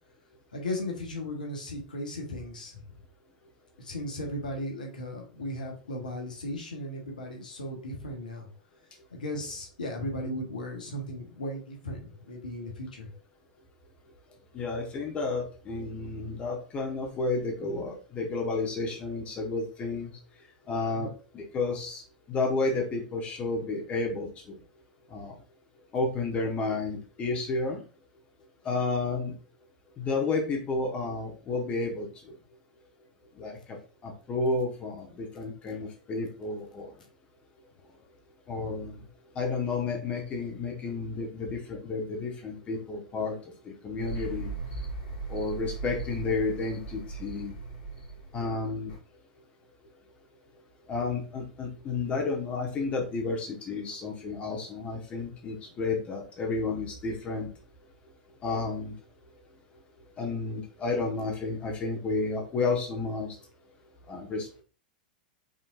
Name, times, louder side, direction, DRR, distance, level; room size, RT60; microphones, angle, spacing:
voice 1, 0.5-2.8 3.8-8.5 9.1-13.1 20.9-21.1 35.7-35.9, left 1 dB, 75° left, 1 dB, 1.3 m, -36 dB
voice 2, 14.5-20.1 20.7-21.1 21.3-22.0 22.3-24.5 25.1-25.3 25.9-27.8 28.6-29.3 30.0-32.1 33.4-33.8 34.0-36.9 38.5-39.0 39.3-43.4 43.6-44.5 45.3-47.5 48.3-48.9 50.9-57.5 58.4-58.9 60.2-63.3 64.1-64.6, left 3 dB, 25° left, 1 dB, 1.3 m, -31 dB
sound 1, 44.0-49.0, right 3 dB, 50° left, 2.1 m, -38 dB
5.4 x 3.5 x 2.6 m, 0.37 s
figure-of-eight pair, 90°, 5 cm